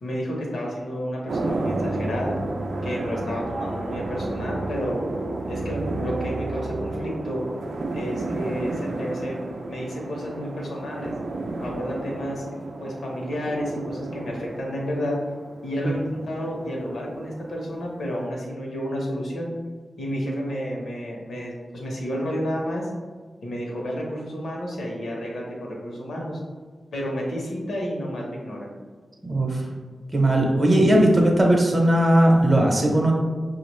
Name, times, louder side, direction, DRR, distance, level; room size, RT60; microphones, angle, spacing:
voice 1, 0.0-2.4 2.8-5.0 5.5-7.4 7.9-9.4 9.7-11.1 11.6-12.4 12.8-15.2 15.6-19.5 20.0-22.9 23.4-26.4 26.9-28.7, equal, 90° left, -2 dB, 1.0 m, -31 dB
sound 1, 1.3-18.1, right 2 dB, 70° right, 0.4 m, -32 dB
voice 2, 29.3-29.6 30.1-33.1, right 1 dB, 25° right, 0 dB, 0.7 m, -18 dB
5.6 x 2.4 x 3.1 m, 1.5 s
wide cardioid pair, 120°, 0 cm